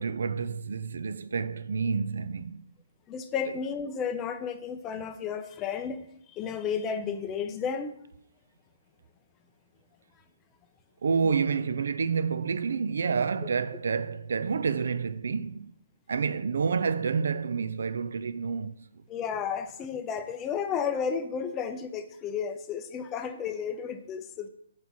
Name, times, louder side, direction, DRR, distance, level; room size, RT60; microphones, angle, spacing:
voice 1, 0.0-2.6 11.0-15.7 16.1-18.9, right 5 dB, 65° right, 0.3 m, -29 dB
voice 2, 3.1-7.9 11.2-11.3 19.1-24.5, left 7 dB, 20° left, 0.5 m, -33 dB
4.7 x 4.0 x 5.7 m
figure-of-eight pair, 130°, 0 cm